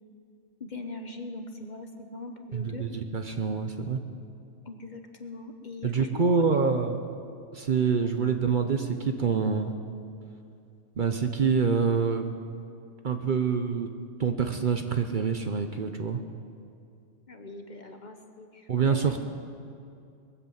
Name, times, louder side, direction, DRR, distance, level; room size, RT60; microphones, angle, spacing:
voice 1, 0.6-2.9 4.6-6.4 8.0-8.1 17.3-19.2, left 3 dB, 40° left, 5 dB, 1.0 m, -41 dB
voice 2, 2.5-4.0 5.8-7.0 7.5-9.7 11.0-12.3 13.0-13.9 14.2-16.2 18.7-19.2, right 5 dB, 45° right, 6 dB, 0.9 m, -26 dB
21.0 x 8.0 x 7.3 m, 2.5 s
omnidirectional pair, 1.2 m